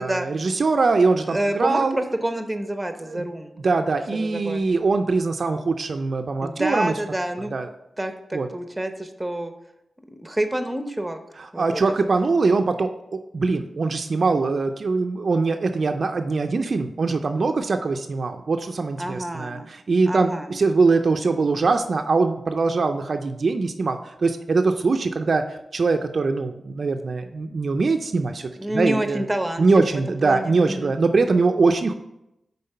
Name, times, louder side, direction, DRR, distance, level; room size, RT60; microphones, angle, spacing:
voice 1, 0.0-2.0 3.1-3.3 3.6-6.9 7.5-7.7 8.3-8.5 11.6-29.2 29.6-31.9, right 3 dB, 60° right, 6 dB, 0.4 m, -22 dB
voice 2, 1.3-3.6 4.1-4.6 6.4-7.5 8.0-9.5 10.1-11.2 11.5-11.8 19.0-19.7 20.1-20.5 28.5-30.9, right 1 dB, 15° right, 7 dB, 0.7 m, -28 dB
5.6 x 3.7 x 5.4 m, 0.86 s
cardioid pair, 55°, 0 cm